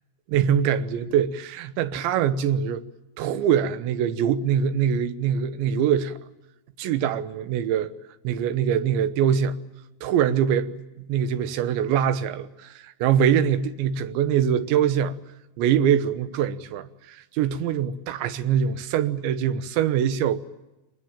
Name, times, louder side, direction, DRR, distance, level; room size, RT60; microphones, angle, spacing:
voice 1, 0.3-2.8 3.2-6.2 6.8-7.9 8.2-9.6 10.0-15.2 15.6-20.4, right 8 dB, 80° right, 3.4 m, -23 dB
25.5 x 21.0 x 8.9 m
omnidirectional pair, 5.2 m